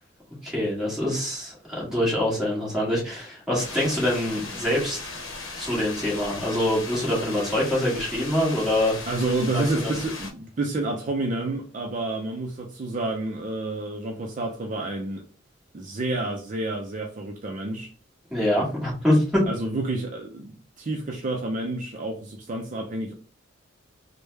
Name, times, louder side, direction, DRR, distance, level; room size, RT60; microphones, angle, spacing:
voice 1, 0.4-5.1 5.6-9.0 9.5-9.9 18.3-19.4, left 1 dB, 5° right, -6 dB, 1.5 m, -25 dB
sound 1, 3.6-10.3, left 3 dB, 85° left, 0.8 m, -37 dB
voice 2, 9.1-15.3 15.7-17.9 19.5-23.1, right 2 dB, 40° right, 2 dB, 0.4 m, -29 dB
3.3 x 2.1 x 3.2 m, 0.37 s
head